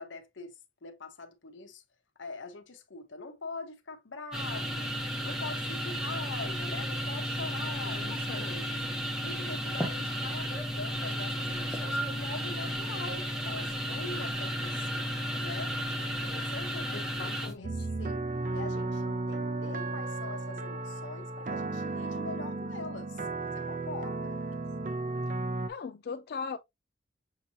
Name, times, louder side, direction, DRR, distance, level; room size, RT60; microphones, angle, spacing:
voice 1, 0.0-1.8 2.2-4.9 5.2-8.8 9.2-15.0 15.4-17.7 18.0-18.2 18.5-23.2 23.5-24.4, left 3 dB, 85° left, 1.0 m, -43 dB
sound 1, 4.3-17.5, equal, 5° right, 0.9 m, -33 dB
voice 2, 7.8-8.4 16.9-17.9 25.7-26.6, left 5 dB, 55° left, 0.3 m, -40 dB
sound 2, 17.6-25.7, right 2 dB, 45° right, 0.6 m, -34 dB
6.6 x 2.9 x 2.8 m
head